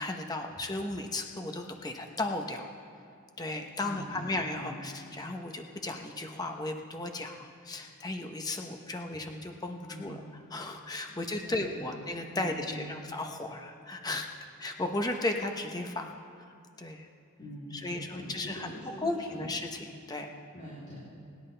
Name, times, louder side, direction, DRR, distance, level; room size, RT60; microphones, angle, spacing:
voice 1, 0.0-2.7 3.4-10.2 10.5-14.3 14.6-16.1 16.8-17.1 17.7-18.7 19.0-20.3, left 2 dB, 15° left, 3 dB, 0.8 m, -35 dB
voice 2, 3.8-4.8 9.9-10.3 11.1-12.0 12.3-13.0 17.4-19.5 20.5-21.0, equal, 35° left, -10 dB, 3.4 m, -44 dB
24.5 x 10.5 x 3.4 m, 2.4 s
head